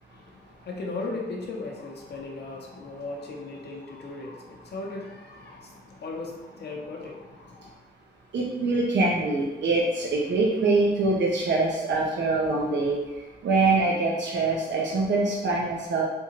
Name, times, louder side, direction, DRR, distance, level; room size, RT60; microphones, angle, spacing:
voice 1, 0.1-7.8, left 3 dB, 70° left, -1 dB, 0.6 m, -37 dB
voice 2, 8.3-13.0 13.4-16.0, right 3 dB, 85° right, -2 dB, 0.5 m, -24 dB
3.6 x 2.8 x 2.8 m, 1.1 s
wide cardioid pair, 160°, 18 cm